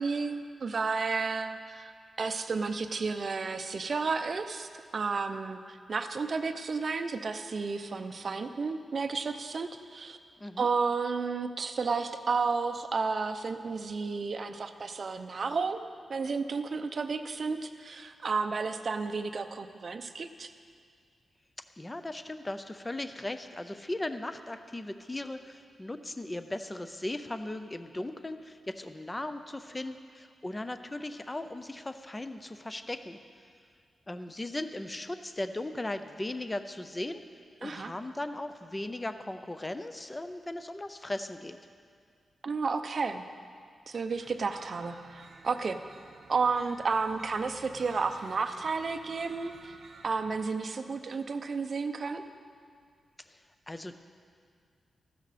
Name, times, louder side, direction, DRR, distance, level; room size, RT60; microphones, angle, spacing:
voice 1, 0.0-1.9 2.2-10.2 10.6-15.8 16.1-20.5 37.6-37.9 42.4-43.2 43.9-45.8 46.3-49.7 50.0-52.2, right 4 dB, 45° right, 7 dB, 0.6 m, -32 dB
voice 2, 21.8-33.2 34.1-37.2 37.6-41.6 53.3-53.4 53.7-54.0, left 1 dB, 15° left, 9 dB, 0.5 m, -37 dB
sound 1, 44.1-50.5, right 4 dB, 80° right, 1.0 m, -52 dB
15.0 x 13.0 x 4.2 m, 2.2 s
wide cardioid pair, 160°, 0 cm